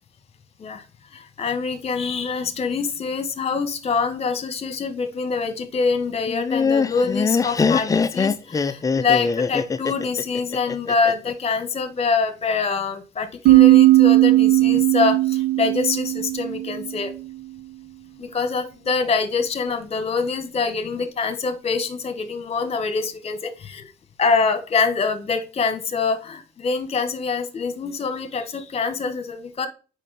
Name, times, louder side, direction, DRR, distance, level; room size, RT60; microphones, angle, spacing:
voice 1, 1.1-17.1 18.2-23.9 24.2-29.7, left 4 dB, 35° left, 10 dB, 1.4 m, -25 dB
Laughter, 6.3-11.3, left 5 dB, 20° left, 0.5 m, -22 dB
sound 1, 13.5-17.1, right 17 dB, 75° right, 1.2 m, -16 dB
7.3 x 5.5 x 4.1 m, 0.34 s
cardioid pair, 110°, 17 cm